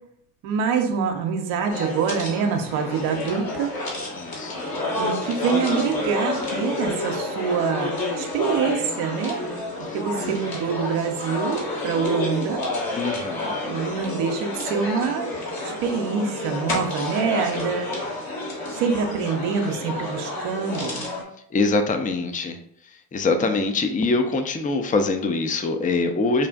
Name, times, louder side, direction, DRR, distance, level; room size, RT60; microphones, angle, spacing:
voice 1, 0.4-3.7 5.0-9.4 9.9-12.6 13.6-15.3 15.6-17.9 18.7-21.0, right 6 dB, 80° right, 3 dB, 0.7 m, -25 dB
sound 1, 1.7-21.2, left 2 dB, 50° left, 1.4 m, -29 dB
voice 2, 4.1-4.7 9.8-10.0 12.9-13.6 21.5-22.6 22.8-26.5, left 3 dB, 20° left, 6 dB, 0.4 m, -24 dB
4.5 x 2.4 x 2.3 m, 0.70 s
hypercardioid pair, 45°, 46 cm